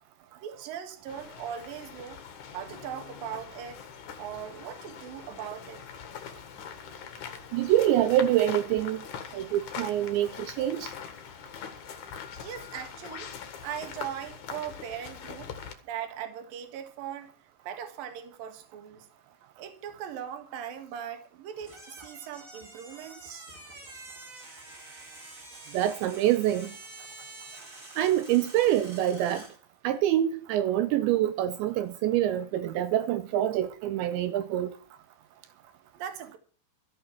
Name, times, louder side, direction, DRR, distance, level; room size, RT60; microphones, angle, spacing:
voice 1, 0.4-2.2 2.5-3.8 4.2-5.8 12.4-13.3 13.6-15.5 15.9-17.3 17.6-19.1 19.6-23.5 35.9-36.4, right 9 dB, 55° right, 2.8 m, -39 dB
sound 1, 1.1-15.7, left 7 dB, 60° left, 2.1 m, -43 dB
voice 2, 7.5-9.0 9.3-10.9 25.7-26.7 28.0-29.4 29.8-34.7, right 12 dB, 80° right, 2.7 m, -26 dB
sound 2, 21.6-29.6, right 2 dB, 30° right, 1.6 m, -47 dB
14.0 x 8.1 x 7.1 m
omnidirectional pair, 6.0 m